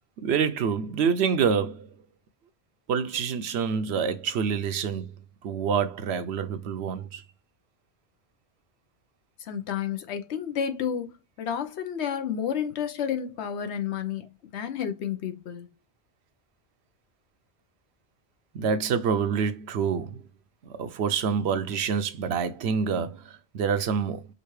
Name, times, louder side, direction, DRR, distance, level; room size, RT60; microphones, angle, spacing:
voice 1, 0.2-1.9 2.9-5.1 5.4-7.2 18.5-20.2 20.6-24.3, right 6 dB, 70° right, 0.8 m, -27 dB
voice 2, 9.4-15.7, left 8 dB, 75° left, 1.0 m, -31 dB
5.0 x 2.4 x 3.1 m
omnidirectional pair, 1.2 m